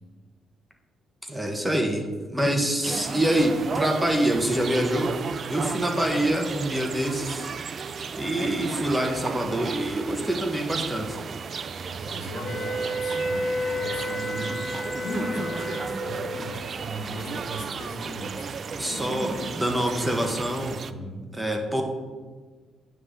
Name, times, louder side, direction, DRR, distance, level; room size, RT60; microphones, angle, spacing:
voice 1, 1.3-2.1 2.3-7.5 8.2-11.2 18.8-20.8 21.3-21.8, right 1 dB, 10° right, 2 dB, 1.1 m, -25 dB
sound 1, 2.8-20.9, right 6 dB, 45° right, 0.4 m, -35 dB
voice 2, 11.9-14.7 15.0-18.5 18.9-20.3 20.9-21.2, equal, 75° left, 0 dB, 1.8 m, -37 dB
sound 2, 12.4-16.3, equal, 60° left, 1.8 m, -31 dB
9.1 x 3.8 x 6.8 m, 1.4 s
cardioid pair, 90°, 0 cm